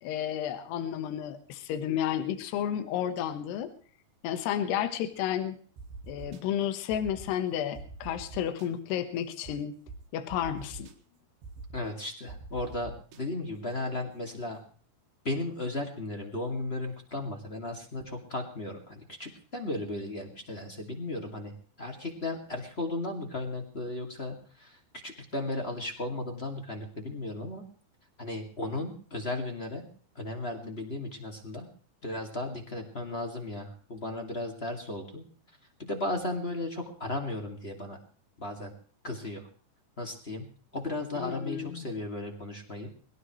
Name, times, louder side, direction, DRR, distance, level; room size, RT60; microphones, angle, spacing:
voice 1, 0.0-3.7 4.2-5.6 6.1-9.8 10.1-10.9 41.1-41.9, left 10 dB, 75° left, 9 dB, 3.3 m, -32 dB
sound 1, 5.8-6.4 6.9-7.3 7.7-8.7 9.4-9.5 9.9-10.0 10.3-10.9 11.4-11.8 12.3-13.2, right 3 dB, 80° right, 4.0 m, -43 dB
voice 2, 11.7-14.6 15.2-21.5 21.8-24.8 25.0-27.6 28.2-29.9 30.1-31.7 32.0-35.2 35.8-38.0 38.4-38.7 39.0-39.4 40.0-40.4 40.7-42.9, left 2 dB, 25° left, 3 dB, 1.5 m, -35 dB
22.0 x 17.5 x 3.2 m, 0.44 s
omnidirectional pair, 4.9 m